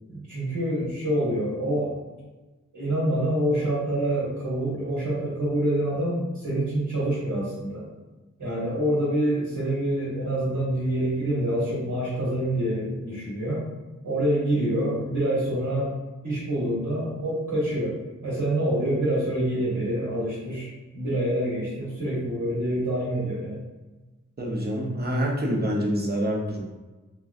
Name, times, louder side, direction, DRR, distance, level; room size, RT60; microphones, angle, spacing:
voice 1, 0.1-2.0 2.7-7.9 8.4-13.6 14.0-15.9 16.2-18.0 18.2-20.7 20.9-23.6, right 1 dB, 70° right, -8 dB, 1.3 m, -26 dB
voice 2, 24.4-26.6, equal, 30° right, -2 dB, 0.8 m, -26 dB
3.0 x 2.3 x 2.4 m, 1.2 s
cardioid pair, 45°, 31 cm